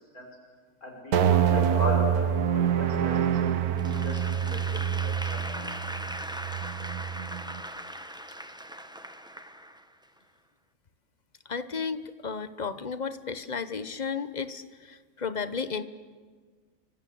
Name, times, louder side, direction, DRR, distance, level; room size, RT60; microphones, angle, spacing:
voice 1, 0.8-3.2 3.8-4.2 4.5-5.7, left 1 dB, 80° left, 1 dB, 6.0 m, -36 dB
sound 1, 1.1-7.6, right 8 dB, 85° right, 1.6 m, -26 dB
Applause / Crowd, 3.8-10.2, equal, 5° right, 1.0 m, -39 dB
voice 2, 11.5-15.8, left 5 dB, 35° left, 12 dB, 1.1 m, -33 dB
30.0 x 25.0 x 8.0 m, 1.5 s
omnidirectional pair, 1.5 m